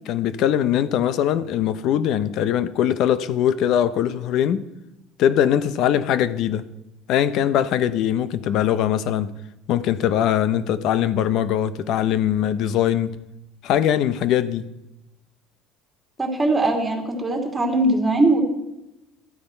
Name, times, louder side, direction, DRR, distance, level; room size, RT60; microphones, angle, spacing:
voice 1, 0.1-4.6 5.2-6.7 7.1-9.3 9.7-13.1 13.6-14.6, left 10 dB, 60° left, 0.7 m, -21 dB
voice 2, 16.2-18.4, right 2 dB, 15° right, 2.4 m, -20 dB
13.0 x 9.5 x 4.4 m
cardioid pair, 120°, 0 cm